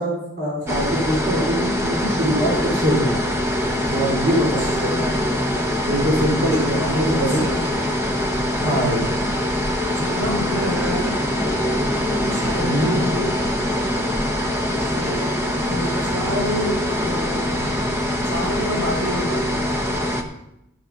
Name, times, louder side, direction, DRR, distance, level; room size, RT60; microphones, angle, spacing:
voice 1, 0.0-3.1 3.9-5.0 5.8-7.4 8.6-9.1 12.6-12.9, equal, 45° right, -4 dB, 3.0 m, -22 dB
sound 1, 0.7-20.2, left 1 dB, 10° right, 0.9 m, -23 dB
voice 2, 4.6-5.5 6.5-7.8 8.6-9.5 9.9-11.2 12.2-13.4 14.8-17.8 18.2-19.5, left 1 dB, 80° right, -2 dB, 4.6 m, -29 dB
12.5 x 6.3 x 5.9 m, 0.84 s
head